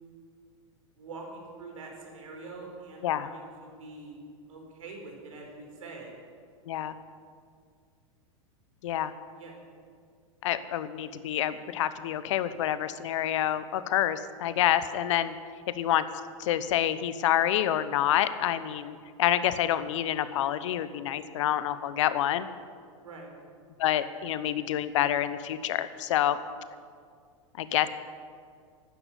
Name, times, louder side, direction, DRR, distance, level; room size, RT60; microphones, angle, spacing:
voice 1, 1.0-4.2 4.5-6.1 9.3-9.5 23.0-23.3, right 3 dB, 80° right, 1 dB, 4.6 m, -44 dB
voice 2, 10.4-15.3 15.7-16.0 16.4-22.5 23.8-26.4 27.6-27.9, left 11 dB, 65° left, 13 dB, 0.9 m, -27 dB
12.0 x 10.0 x 9.3 m, 2.1 s
hypercardioid pair, 110°, 17 cm